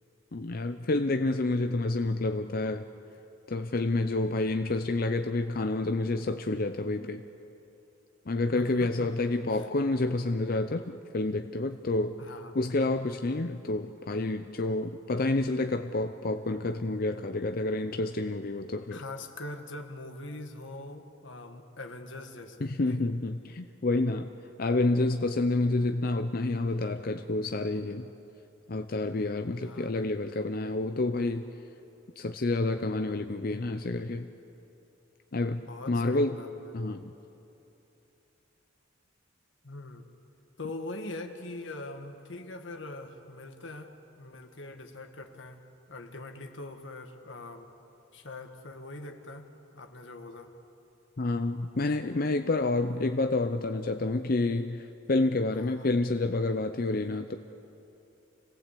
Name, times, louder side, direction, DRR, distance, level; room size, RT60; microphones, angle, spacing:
voice 1, 0.3-2.9 3.5-7.2 8.3-12.2 12.5-19.0 22.6-24.3 24.6-28.1 28.7-31.5 32.2-34.3 35.3-35.6 35.9-36.4 36.7-37.1 51.2-57.4, left 2 dB, 50° left, 7 dB, 0.6 m, -29 dB
voice 2, 8.6-9.1 9.5-9.7 12.2-12.6 18.9-23.1 29.6-30.0 35.7-36.7 39.6-40.1 40.6-45.6 45.9-47.7 48.1-50.5 55.5-55.9, left 2 dB, 80° left, 6 dB, 1.8 m, -42 dB
26.0 x 18.0 x 8.4 m, 2.9 s
head